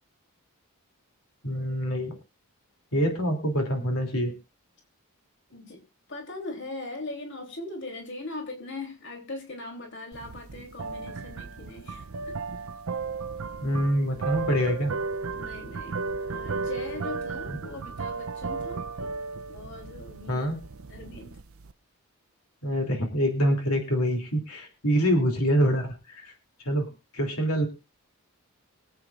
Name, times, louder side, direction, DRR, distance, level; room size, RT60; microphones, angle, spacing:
voice 1, 1.4-2.2 2.9-4.3 13.6-14.9 20.3-20.6 22.6-26.3 26.6-26.9 27.1-27.7, equal, 80° left, 3 dB, 2.9 m, -25 dB
voice 2, 5.5-5.8 6.1-12.4 15.3-18.9 19.5-20.4 20.8-21.4, left 2 dB, 55° left, 2 dB, 3.2 m, -40 dB
sound 1, 10.1-21.7, right 4 dB, 70° right, 0.6 m, -35 dB
24.0 x 8.5 x 2.5 m, 0.28 s
head